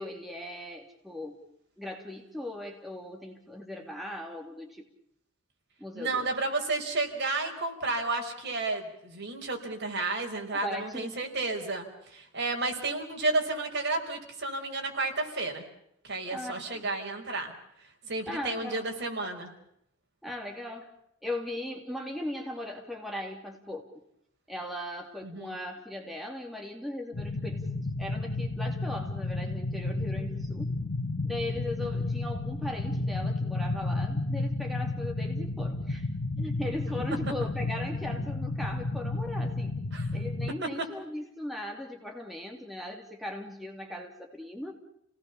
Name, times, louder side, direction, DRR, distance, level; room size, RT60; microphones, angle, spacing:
voice 1, 0.0-1.4 1.8-4.9 5.8-6.3 10.5-11.3 16.3-16.9 18.3-18.9 20.2-20.9 21.2-23.9 24.5-27.7 28.0-30.7 31.2-36.1 36.4-39.8 40.1-44.7, left 1 dB, ahead, 1 dB, 2.8 m, -38 dB
voice 2, 5.9-15.6 16.0-17.5 18.0-19.5 25.2-25.5 31.8-32.1 39.9-40.1, right 3 dB, 55° right, 3 dB, 5.1 m, -32 dB
sound 1, 27.1-40.5, left 2 dB, 70° left, 1.3 m, -32 dB
29.5 x 18.5 x 7.1 m, 0.76 s
head